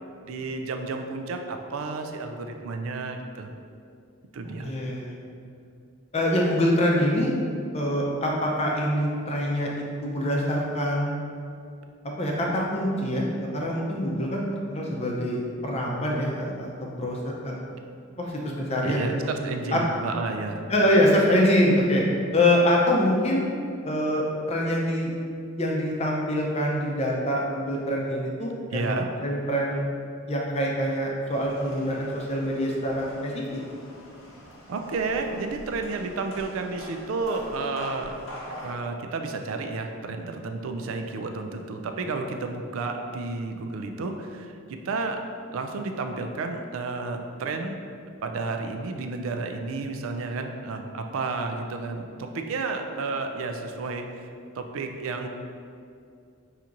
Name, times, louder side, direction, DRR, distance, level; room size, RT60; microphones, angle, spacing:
voice 1, 0.2-3.5 4.3-4.7 18.8-20.7 28.7-29.1 34.7-38.1 38.6-44.5 44.8-45.2 45.5-47.8 48.2-54.1 54.6-55.3, right 3 dB, 75° right, 4 dB, 0.4 m, -31 dB
voice 2, 4.6-5.2 6.1-7.3 7.7-11.1 12.2-17.6 18.2-19.3 19.7-19.8 20.7-22.0 22.3-23.5 23.8-25.1 25.6-29.8 30.3-33.6, equal, 30° left, -2 dB, 0.5 m, -25 dB
sound 1, 31.3-38.7, equal, 85° left, 0.9 m, -44 dB
5.8 x 2.8 x 2.5 m, 2.4 s
head